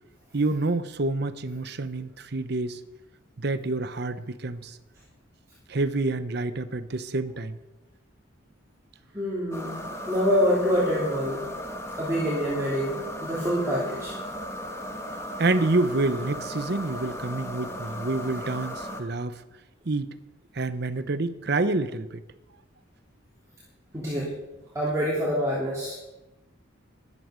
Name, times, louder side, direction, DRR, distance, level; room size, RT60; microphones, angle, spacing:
voice 1, 0.3-2.8 3.4-4.8 5.7-7.6 15.4-19.4 19.8-20.1 20.5-22.2, right 2 dB, 55° right, 0.8 m, -28 dB
voice 2, 9.1-9.8 10.1-11.4 12.0-14.1 23.9-24.3 24.7-25.9, equal, 15° right, 3.1 m, -26 dB
sound 1, 9.5-19.0, equal, 15° left, 1.2 m, -36 dB
14.0 x 11.0 x 5.1 m
head